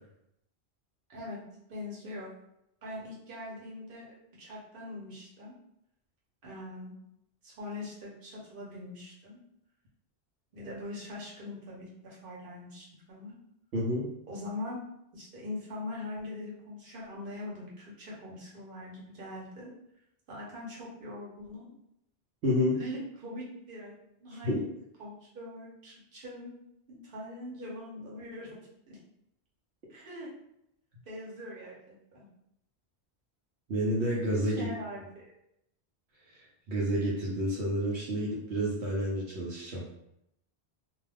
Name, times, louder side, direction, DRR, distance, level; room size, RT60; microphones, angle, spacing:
voice 1, 1.1-1.4 1.7-2.3 2.8-4.1 4.4-5.5 6.4-6.9 7.4-9.4 10.5-13.3 14.3-14.8 15.1-19.7 20.3-21.7 22.8-24.7 25.0-26.5 26.9-28.6 28.9-29.0 29.9-30.3 31.1-32.3 34.4-35.3, left 1 dB, 55° right, -5 dB, 1.0 m, -42 dB
voice 2, 13.7-14.1 22.4-22.8 24.3-24.6 33.7-34.7 36.3-39.8, equal, 80° right, -5 dB, 0.9 m, -30 dB
2.3 x 2.2 x 3.3 m, 0.79 s
omnidirectional pair, 1.1 m